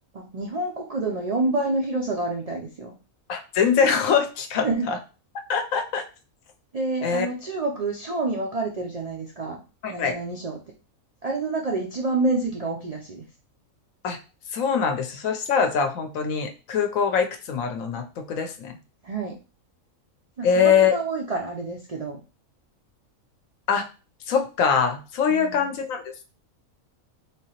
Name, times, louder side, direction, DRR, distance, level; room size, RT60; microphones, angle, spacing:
voice 1, 0.1-2.9 4.6-4.9 6.7-9.6 9.9-10.6 11.2-13.3 19.0-19.4 20.4-22.2 25.3-25.7, right 2 dB, 80° right, 0 dB, 0.3 m, -28 dB
voice 2, 3.3-5.0 5.5-6.0 7.0-7.3 9.8-10.1 14.0-14.2 14.5-18.8 20.4-21.0 23.7-23.9 24.3-26.3, left 6 dB, 80° left, 6 dB, 1.0 m, -23 dB
3.6 x 2.8 x 2.8 m, 0.33 s
omnidirectional pair, 1.4 m